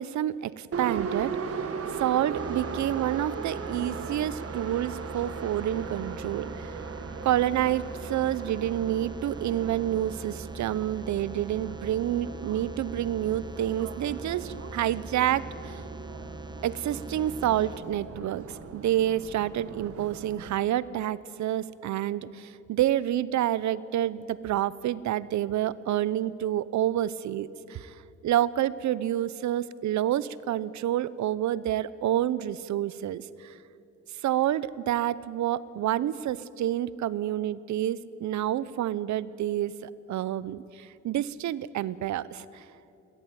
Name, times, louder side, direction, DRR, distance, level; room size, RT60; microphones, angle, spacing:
voice 1, 0.0-1.4 1.9-6.8 7.2-15.8 16.6-18.4 18.7-27.9 28.2-33.6 34.2-42.6, right 12 dB, 70° right, 19 dB, 0.8 m, -28 dB
Subway metro underground, 0.7-20.5, right 5 dB, 50° right, 1.7 m, -38 dB
sound 1, 2.4-17.8, right 1 dB, 15° right, 1.3 m, -42 dB
21.5 x 17.0 x 9.4 m, 2.7 s
cardioid pair, 90°, 30 cm